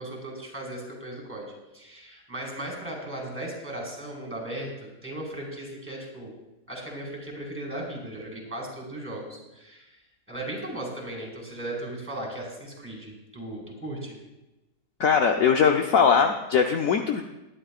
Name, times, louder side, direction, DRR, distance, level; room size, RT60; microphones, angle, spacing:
voice 1, 0.0-6.3 6.7-10.0 10.3-14.2, right 1 dB, 5° right, -1 dB, 4.8 m, -37 dB
voice 2, 15.0-17.2, left 6 dB, 60° left, 3 dB, 1.1 m, -21 dB
20.5 x 11.5 x 2.4 m, 0.99 s
omnidirectional pair, 1.8 m